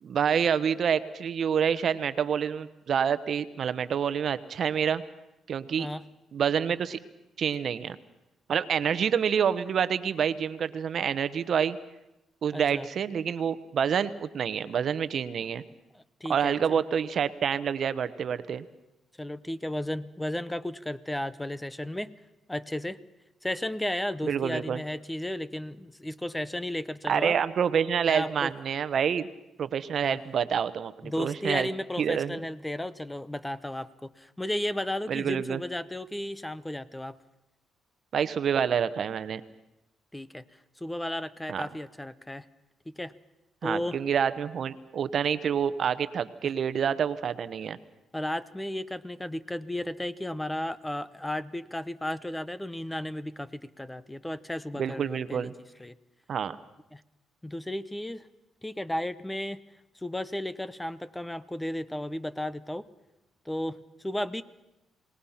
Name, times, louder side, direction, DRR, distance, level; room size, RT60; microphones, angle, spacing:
voice 1, 0.0-5.0 5.5-5.9 6.3-7.0 7.4-8.0 8.5-11.8 12.4-15.6 16.3-18.6 24.2-24.8 27.1-29.3 29.6-31.7 32.0-32.4 35.1-35.6 38.1-39.4 41.5-41.7 43.6-47.8 54.8-55.5 56.3-56.6, right 7 dB, 55° right, 13 dB, 1.0 m, -27 dB
voice 2, 12.5-12.9 15.9-16.8 19.2-22.1 22.5-23.0 23.4-27.4 28.1-28.5 30.0-30.2 31.0-37.2 40.1-40.4 40.8-42.4 42.9-43.1 43.6-44.0 48.1-55.5 55.8-55.9 56.9-57.0 57.4-58.2 58.6-59.6 60.0-62.8 63.5-64.4, left 1 dB, 10° left, 16 dB, 0.8 m, -34 dB
28.0 x 18.5 x 5.8 m, 0.93 s
cardioid pair, 90°, 0 cm